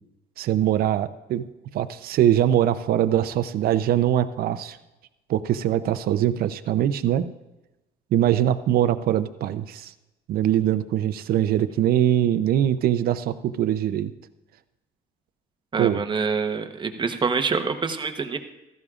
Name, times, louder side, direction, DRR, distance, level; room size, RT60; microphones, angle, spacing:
voice 1, 0.4-1.4 1.7-4.8 5.3-7.3 8.1-9.9 10.3-14.1 15.8-16.0, right 11 dB, 65° right, 12 dB, 0.6 m, -22 dB
voice 2, 15.7-18.4, right 5 dB, 30° right, 7 dB, 1.0 m, -26 dB
16.0 x 13.5 x 2.5 m, 0.98 s
cardioid pair, 110°, 17 cm